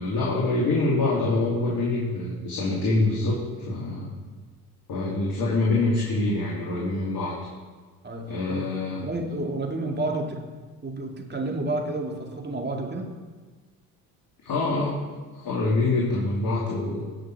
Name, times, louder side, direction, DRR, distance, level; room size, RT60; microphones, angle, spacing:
voice 1, 0.0-4.1 4.9-7.4 8.3-9.1 14.4-15.0 15.3-17.1, left 2 dB, 50° left, -4 dB, 2.8 m, -25 dB
voice 2, 8.0-10.4 10.8-13.1, right 2 dB, 20° right, 1 dB, 2.4 m, -30 dB
17.5 x 6.2 x 4.8 m, 1.4 s
hypercardioid pair, 65°, 47 cm